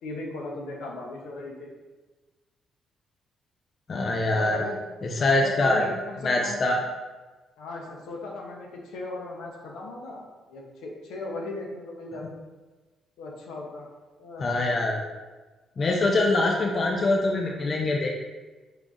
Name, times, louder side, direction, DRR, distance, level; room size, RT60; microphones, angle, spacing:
voice 1, 0.0-1.7 4.3-4.8 5.3-6.6 7.6-10.2 10.5-12.4 13.2-13.9 14.2-14.5, left 2 dB, 85° left, -1 dB, 0.9 m, -37 dB
voice 2, 3.9-4.6 5.0-5.9 6.2-6.8 14.4-15.0 15.8-18.1, left 2 dB, 45° left, 1 dB, 0.6 m, -24 dB
5.0 x 3.6 x 2.6 m, 1.3 s
cardioid pair, 90°, 0 cm